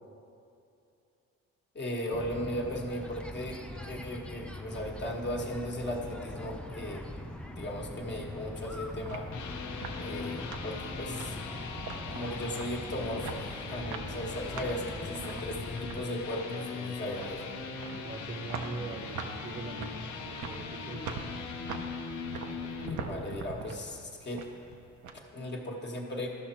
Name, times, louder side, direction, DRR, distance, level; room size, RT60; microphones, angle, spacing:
voice 1, 1.7-9.3 10.0-11.4 12.1-17.4 22.9-24.4 25.3-26.3, left 1 dB, 35° left, -1 dB, 1.3 m, -37 dB
sound 1, 2.1-16.1, left 1 dB, 5° left, 0.4 m, -42 dB
sound 2, 8.5-25.1, right 5 dB, 80° right, 0.8 m, -44 dB
sound 3, 9.1-23.0, left 5 dB, 75° left, 0.9 m, -40 dB
voice 2, 17.9-21.2, right 3 dB, 30° right, 5 dB, 0.8 m, -41 dB
12.5 x 5.8 x 4.4 m, 2.6 s
cardioid pair, 90°, 30 cm